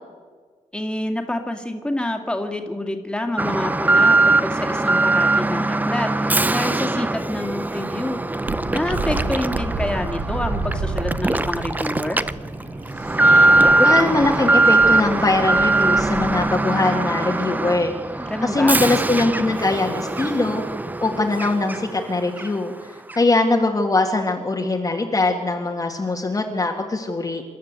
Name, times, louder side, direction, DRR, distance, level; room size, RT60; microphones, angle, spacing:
voice 1, 0.7-12.2 18.2-18.8, left 1 dB, 5° left, 3 dB, 2.2 m, -28 dB
Alarm, 3.4-22.0 22.4-22.5 23.1-23.2, right 2 dB, 10° right, 0.6 m, -21 dB
sound 1, 8.5-16.4, right 3 dB, 70° right, 7.4 m, -31 dB
voice 2, 13.8-17.9 18.4-20.6 21.0-22.7 23.1-27.4, left 2 dB, 25° left, 1 dB, 1.7 m, -21 dB
27.5 x 12.5 x 8.2 m, 1.5 s
wide cardioid pair, 140°, 13 cm